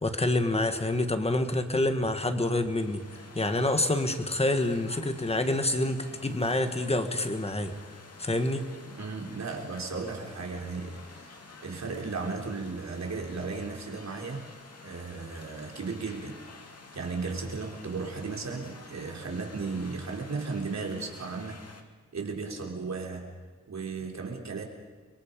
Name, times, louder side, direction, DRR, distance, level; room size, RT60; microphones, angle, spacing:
voice 1, 0.0-3.0 3.3-7.7 8.2-8.7, left 2 dB, 20° left, 7 dB, 1.8 m, -27 dB
sound 1, 2.5-21.8, left 3 dB, 50° left, 2.3 m, -50 dB
voice 2, 8.9-14.5 14.8-16.4 16.9-21.6 22.1-23.3 23.7-24.6, right 4 dB, 60° right, 1 dB, 3.8 m, -35 dB
30.0 x 23.5 x 5.4 m, 1.4 s
wide cardioid pair, 170°, 31 cm